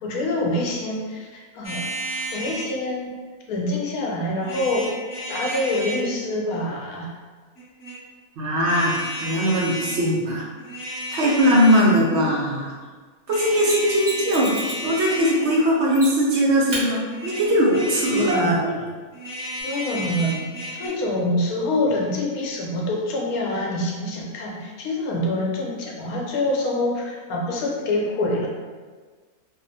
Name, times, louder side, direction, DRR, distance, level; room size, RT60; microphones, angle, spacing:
voice 1, 0.0-3.1 3.5-4.9 5.3-7.1 11.9-12.4 18.1-18.9 19.6-28.5, left 1 dB, 80° left, -2 dB, 1.0 m, -26 dB
sound 1, 1.6-2.7 4.4-6.0 7.6-8.0 8.6-10.0 10.6-12.0 13.3-15.7 17.1-18.5 19.1-20.9, equal, 50° left, 1.0 m, -32 dB
voice 2, 8.4-10.4 11.1-12.7 13.3-14.6 14.8-18.8, equal, 65° right, -4 dB, 0.7 m, -20 dB
Mechanisms, 13.6-14.9 15.9-16.3 16.7-16.8 19.6-19.7, right 1 dB, 35° right, 0.9 m, -32 dB
2.7 x 2.0 x 2.6 m, 1.4 s
omnidirectional pair, 1.5 m